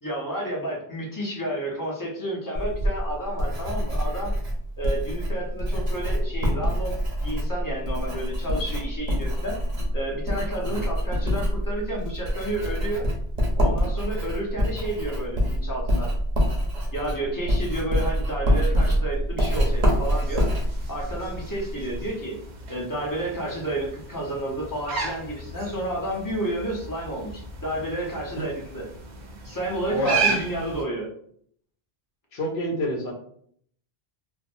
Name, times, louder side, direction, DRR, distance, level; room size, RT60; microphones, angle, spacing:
voice 1, 0.0-4.3 4.8-9.6 9.9-13.0 13.6-16.1 16.9-20.5 20.9-22.4 22.7-28.8 29.4-31.1, right 1 dB, 20° left, -3 dB, 0.7 m, -31 dB
Writing, 2.5-22.1, equal, 40° right, 0.7 m, -26 dB
sound 1, 19.5-30.8, right 4 dB, 85° right, 1.0 m, -34 dB
voice 2, 29.9-30.3 32.3-33.1, equal, 60° left, -2 dB, 0.9 m, -27 dB
3.3 x 2.0 x 2.5 m, 0.63 s
omnidirectional pair, 1.1 m